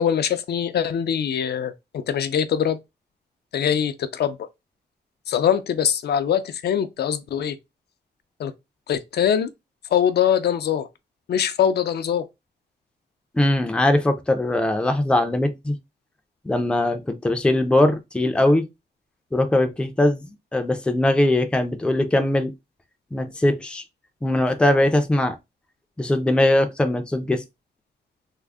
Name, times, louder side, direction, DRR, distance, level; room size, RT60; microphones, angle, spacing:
voice 1, 0.0-2.8 3.5-4.4 5.3-7.6 8.4-8.5 8.9-9.5 9.9-10.9 11.3-12.3, left 8 dB, 70° left, 0.4 m, -22 dB
voice 2, 13.3-15.8 16.4-18.7 19.3-22.5 23.1-23.8 24.2-25.4 26.0-27.4, left 1 dB, 5° left, 0.4 m, -21 dB
3.6 x 2.0 x 3.4 m
wide cardioid pair, 160°, 18 cm